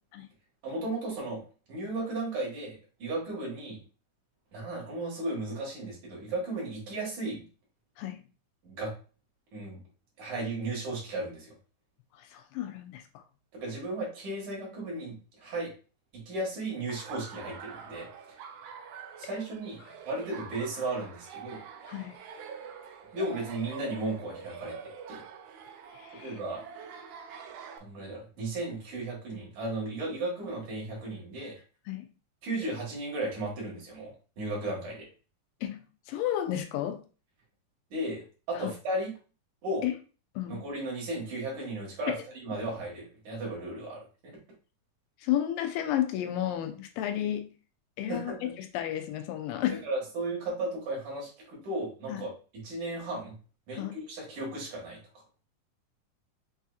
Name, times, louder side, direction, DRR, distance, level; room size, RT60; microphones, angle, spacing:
voice 1, 0.6-1.4 1.7-3.8 4.5-7.4 8.6-8.9 9.5-9.8 10.2-11.5 13.5-15.7 16.1-18.4 19.2-21.6 23.1-24.8 25.1-25.2 26.1-26.6 27.8-31.6 32.4-34.1 34.4-35.1 37.9-39.1 39.6-39.8 40.5-44.3 48.1-48.5 49.8-52.3 52.6-53.4 53.7-55.0, right 2 dB, 60° right, -4 dB, 3.1 m, -35 dB
voice 2, 12.1-13.2 21.9-22.2 25.9-26.4 31.9-32.1 35.6-37.0 38.6-38.7 39.8-39.9 40.4-40.6 42.1-42.2 45.2-47.5 48.0-49.8 52.1-52.3 53.7-54.0, left 12 dB, 90° left, 7 dB, 2.3 m, -32 dB
Laughter, 16.9-27.8, right 6 dB, 75° right, 1.8 m, -45 dB
6.5 x 2.8 x 2.4 m, 0.36 s
omnidirectional pair, 4.0 m